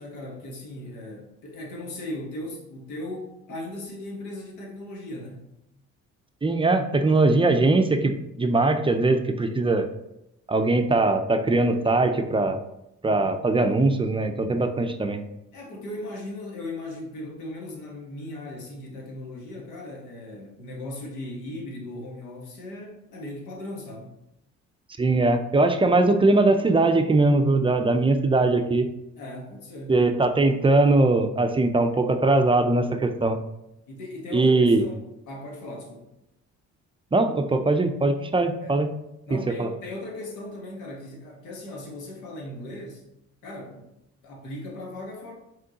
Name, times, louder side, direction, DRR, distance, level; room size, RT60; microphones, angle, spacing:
voice 1, 0.0-5.5 7.2-7.3 15.5-24.1 29.2-30.0 33.9-35.0 35.3-36.1 38.6-38.8 39.3-43.0 43.4-43.9 44.2-45.3, left 1 dB, 90° left, 0 dB, 1.3 m, -38 dB
voice 2, 6.4-8.1 8.4-9.9 10.5-12.6 13.0-15.2 25.0-28.9 29.9-33.4 34.3-34.8 37.1-38.9 39.6-39.7, right 2 dB, 15° right, 7 dB, 0.4 m, -21 dB
5.1 x 3.7 x 2.8 m, 0.85 s
cardioid pair, 90°, 30 cm